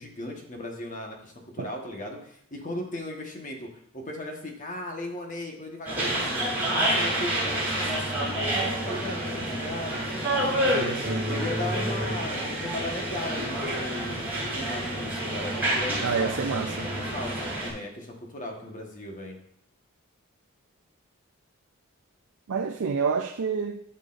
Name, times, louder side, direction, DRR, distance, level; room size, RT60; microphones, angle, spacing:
voice 1, 0.0-10.3 11.2-19.4, left 1 dB, 35° left, 1 dB, 1.3 m, -37 dB
sound 1, 5.8-17.7, right 1 dB, 10° right, 2.9 m, -28 dB
voice 2, 10.7-11.3 16.0-16.9 22.5-23.8, right 5 dB, 70° right, 4 dB, 0.5 m, -28 dB
11.5 x 6.5 x 2.5 m, 0.69 s
head